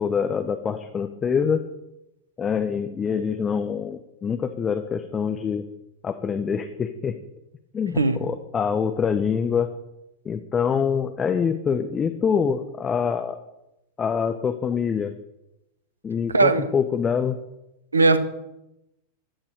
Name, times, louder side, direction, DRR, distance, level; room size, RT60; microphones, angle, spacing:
voice 1, 0.0-1.6 2.4-5.6 6.0-7.2 7.7-9.7 10.2-13.4 14.0-15.1 16.0-17.4, left 6 dB, 20° left, 9 dB, 1.0 m, -25 dB
voice 2, 16.3-16.6 17.9-18.2, right 3 dB, 80° right, 12 dB, 1.2 m, -18 dB
15.5 x 11.5 x 4.9 m, 0.89 s
figure-of-eight pair, 90°, 0 cm